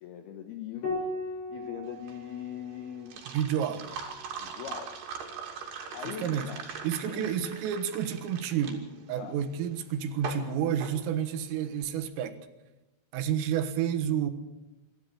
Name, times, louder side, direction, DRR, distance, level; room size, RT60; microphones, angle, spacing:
voice 1, 0.0-3.2 4.4-5.0 5.6-6.6 7.1-7.6 9.1-9.4, left 10 dB, 75° left, 6 dB, 2.4 m, -41 dB
Piano, 0.8-5.7 7.3-8.1, left 2 dB, 40° left, 6.5 m, -40 dB
sound 1, 1.9-11.7, right 6 dB, 55° right, 4.4 m, -41 dB
voice 2, 3.3-3.9 6.1-6.5 6.8-12.4 13.1-14.3, right 9 dB, 80° right, 7 dB, 4.0 m, -30 dB
26.5 x 12.5 x 8.4 m, 1.0 s
omnidirectional pair, 5.9 m